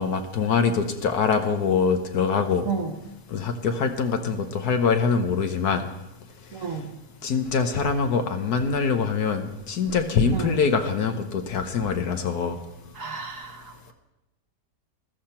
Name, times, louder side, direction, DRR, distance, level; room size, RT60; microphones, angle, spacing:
voice 1, 0.0-2.7 3.3-5.9 7.2-12.6, left 5 dB, 60° left, 7 dB, 1.4 m, -24 dB
voice 2, 6.5-6.9 10.3-10.6 12.9-13.9, right 5 dB, 50° right, 5 dB, 1.3 m, -32 dB
14.5 x 13.5 x 4.4 m, 0.92 s
omnidirectional pair, 1.9 m